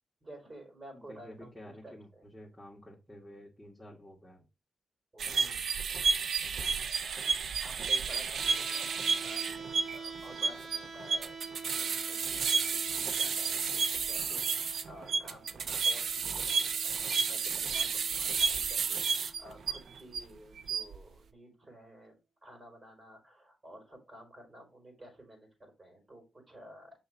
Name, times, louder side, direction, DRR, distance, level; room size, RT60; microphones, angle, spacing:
voice 1, 0.2-2.2 5.1-5.5 7.6-27.0, equal, 30° right, 3 dB, 5.0 m, -53 dB
voice 2, 0.9-4.5 5.3-5.6, equal, 5° left, -4 dB, 2.2 m, -51 dB
sound 1, 5.2-20.2 20.6-21.0, right 5 dB, 75° right, 0.6 m, -31 dB
sound 2, 8.4-20.4, right 5 dB, 55° right, 1.0 m, -48 dB
6.8 x 5.8 x 3.6 m, 0.27 s
cardioid pair, 65°, 0 cm